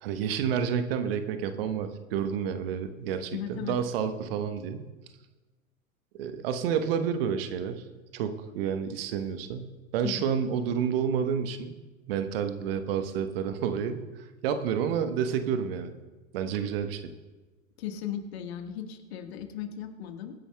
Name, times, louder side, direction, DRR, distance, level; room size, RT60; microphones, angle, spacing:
voice 1, 0.0-4.9 6.2-7.8 8.1-11.8 12.1-15.9 16.3-17.1, right 7 dB, 45° right, 9 dB, 1.1 m, -30 dB
voice 2, 3.3-3.8 10.0-10.2 17.8-20.3, left 9 dB, 50° left, 6 dB, 1.6 m, -36 dB
24.0 x 10.0 x 2.2 m, 1.2 s
figure-of-eight pair, 100°, 41 cm